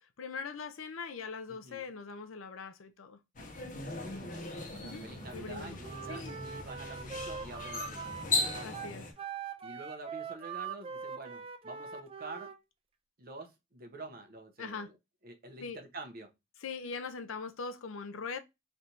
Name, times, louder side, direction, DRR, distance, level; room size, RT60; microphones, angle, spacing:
voice 1, 0.2-3.2 4.8-5.0 5.3-5.8 6.1-6.4 8.6-9.1 14.6-14.9 15.6-15.8 16.6-18.4, left 5 dB, 85° left, 0.6 m, -41 dB
sound 1, 3.4-9.1, left 3 dB, 40° left, 0.9 m, -38 dB
voice 2, 3.9-8.2 9.6-12.5 13.2-15.0 15.2-16.3, right 2 dB, 45° right, 0.9 m, -47 dB
sound 2, 5.0-8.2, right 1 dB, 5° left, 0.8 m, -50 dB
Wind instrument woodwind instrument, 5.8-12.6, right 7 dB, 30° right, 0.4 m, -42 dB
3.4 x 2.6 x 4.3 m
head